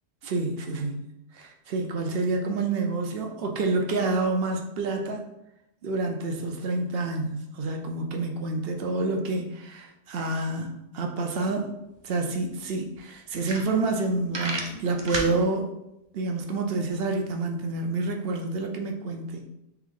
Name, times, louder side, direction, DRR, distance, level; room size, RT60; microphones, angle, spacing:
voice 1, 0.2-1.1 1.3-5.2 5.8-11.7 12.0-15.7 16.1-19.4, right 3 dB, 60° right, 3 dB, 0.8 m, -28 dB
sound 1, 11.9-12.0 12.3-12.4 12.9-13.0 13.3-14.0 14.3-15.3, right 2 dB, 45° right, 0.3 m, -31 dB
3.6 x 3.4 x 3.7 m, 0.88 s
omnidirectional pair, 1.2 m